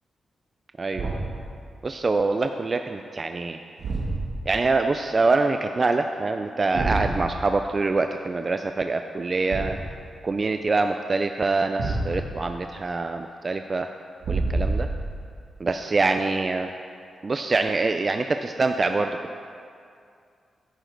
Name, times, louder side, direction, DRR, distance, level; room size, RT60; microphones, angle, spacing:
Thump thud, 0.9-1.5 3.8-4.5 6.7-7.2 9.5-10.0 11.8-12.4 14.2-15.2, right 2 dB, 80° right, 1.9 m, -27 dB
voice 1, 1.8-3.6 4.5-9.8 10.2-13.9 14.3-14.9 15.6-16.7 17.2-19.1, right 3 dB, 35° right, 6 dB, 0.4 m, -25 dB
10.5 x 9.4 x 3.9 m, 2.4 s
cardioid pair, 100°, 0 cm